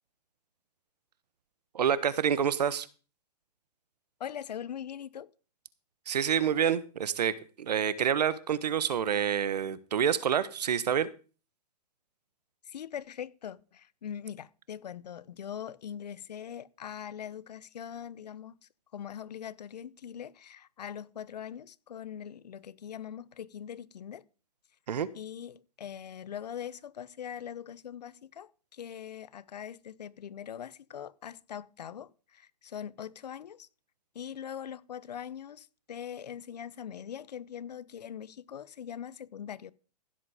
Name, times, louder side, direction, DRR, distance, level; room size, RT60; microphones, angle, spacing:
voice 1, 1.7-2.9 6.0-11.1 24.9-25.1, right 8 dB, 75° right, 1.3 m, -28 dB
voice 2, 4.2-5.3 12.6-24.2 25.1-33.7 34.1-39.7, left 9 dB, 80° left, 1.0 m, -42 dB
15.5 x 7.6 x 5.0 m
hypercardioid pair, 170°, 21 cm